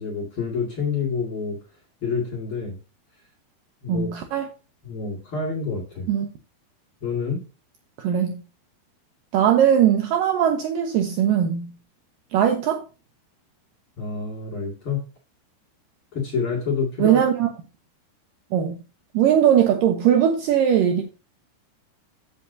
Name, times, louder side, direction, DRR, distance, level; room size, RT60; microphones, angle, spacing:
voice 1, 0.0-1.6 2.0-2.8 3.8-4.1 4.8-6.1 7.0-7.4 14.0-15.0 16.1-17.2, left 5 dB, 40° left, 2.3 m, -27 dB
voice 2, 3.9-4.5 6.1-6.3 8.0-8.4 9.3-11.7 12.3-12.8 17.0-17.5 18.5-18.7 19.1-21.0, right 9 dB, 75° right, 2.1 m, -20 dB
14.5 x 5.8 x 2.7 m
omnidirectional pair, 4.8 m